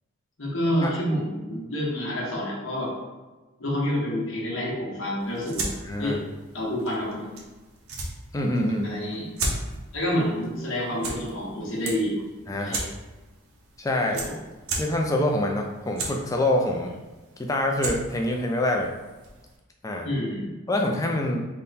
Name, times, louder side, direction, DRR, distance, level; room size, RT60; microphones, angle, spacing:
voice 1, 0.4-2.9 3.6-5.7 6.0-6.2 6.5-7.3 8.8-9.3 9.9-12.2 12.6-12.9 14.1-14.4 20.0-20.5, equal, 70° left, -4 dB, 1.1 m, -28 dB
sound 1, 5.2-19.6, right 2 dB, 80° right, 0.8 m, -37 dB
voice 2, 5.8-6.2 8.3-9.0 12.5-12.8 13.8-14.2 14.8-16.9 17.4-18.9 19.8-20.1 20.7-21.5, left 1 dB, 15° left, 1 dB, 0.3 m, -25 dB
3.6 x 2.2 x 4.0 m, 1.2 s
head